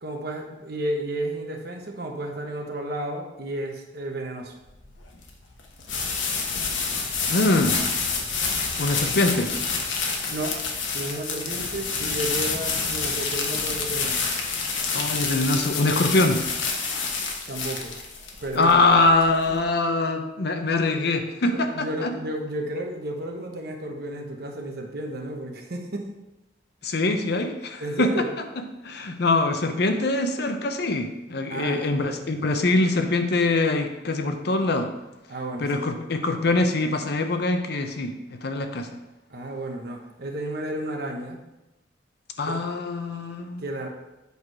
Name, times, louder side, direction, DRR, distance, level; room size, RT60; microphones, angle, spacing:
voice 1, 0.0-4.6 10.3-10.6 10.9-14.2 17.5-18.0 18.4-18.7 19.5-19.6 21.5-26.1 27.8-28.3 31.5-32.2 35.3-36.0 39.3-41.4 42.5-42.6 43.6-43.9, right 1 dB, 55° right, 2 dB, 1.1 m, -32 dB
sound 1, 4.7-19.6, left 4 dB, 80° left, 1.2 m, -28 dB
voice 2, 7.3-7.8 8.8-9.5 14.9-16.4 18.5-22.1 26.8-28.1 28.8-34.9 35.6-38.9 42.4-43.6, left 2 dB, 60° left, 6 dB, 0.7 m, -23 dB
8.1 x 4.8 x 4.7 m, 0.98 s
head